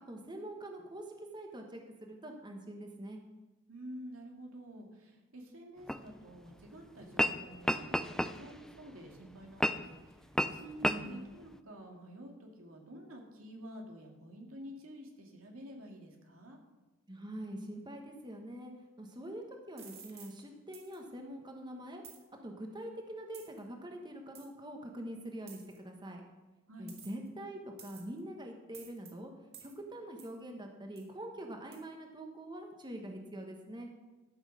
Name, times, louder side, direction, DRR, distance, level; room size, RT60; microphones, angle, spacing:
voice 1, 0.1-1.0 1.3-3.2 10.8-11.2 17.1-18.7 19.0-22.0 22.4-26.2 26.8-29.3 29.6-33.9, right 1 dB, 20° right, 3 dB, 1.2 m, -44 dB
voice 2, 3.7-16.6 26.7-26.9, equal, 90° right, 1 dB, 2.3 m, -49 dB
sound 1, 5.9-6.0 7.0-7.4 7.6-8.7 9.6-9.9 10.4-10.5 10.8-11.0, equal, 5° left, 0.4 m, -30 dB
sound 2, 19.8-20.3 20.7-21.0 22.0-22.2 23.3-23.6 24.3-24.5 25.5-25.8 26.9-27.3 27.8-28.2 28.7-29.1 29.5-29.7 30.2-30.4 31.0-31.1 31.7-31.8, right 7 dB, 50° right, 2.1 m, -52 dB
13.0 x 6.3 x 6.5 m, 1.2 s
head